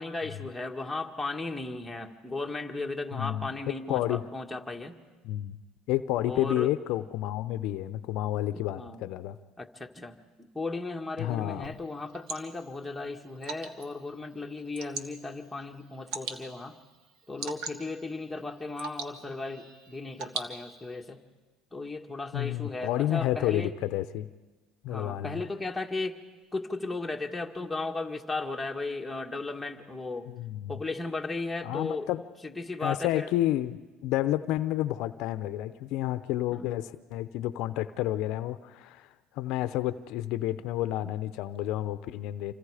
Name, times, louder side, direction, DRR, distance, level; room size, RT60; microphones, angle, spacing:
voice 1, 0.0-5.0 6.2-6.7 8.5-9.0 9.6-16.8 17.3-21.2 21.7-23.7 24.9-26.2 26.5-30.3 30.7-32.1 32.4-33.3 36.5-36.7 41.0-41.1, left 3 dB, 5° left, 1 dB, 1.8 m, -36 dB
voice 2, 3.1-3.5 3.9-4.2 5.2-5.6 5.9-9.4 11.2-11.8 22.3-24.3 24.8-25.4 30.3-30.8 31.6-32.2 32.8-39.1 39.3-42.5, left 14 dB, 70° left, 12 dB, 0.7 m, -30 dB
Water / Drip, 11.6-21.0, right 6 dB, 70° right, 1.8 m, -43 dB
27.5 x 25.0 x 5.0 m, 1.2 s
supercardioid pair, 100°, 0 cm